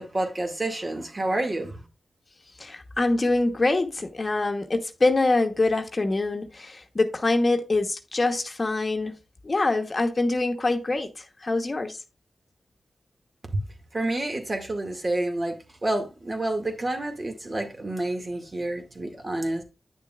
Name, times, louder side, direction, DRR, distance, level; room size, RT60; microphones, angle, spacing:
voice 1, 0.0-1.8 13.5-13.6 13.9-15.5 15.8-19.6, right 2 dB, 40° right, 2.1 m, -29 dB
voice 2, 2.6-9.2 9.4-12.0, left 2 dB, 40° left, 1.1 m, -25 dB
9.6 x 6.7 x 2.4 m
cardioid pair, 60°, 0 cm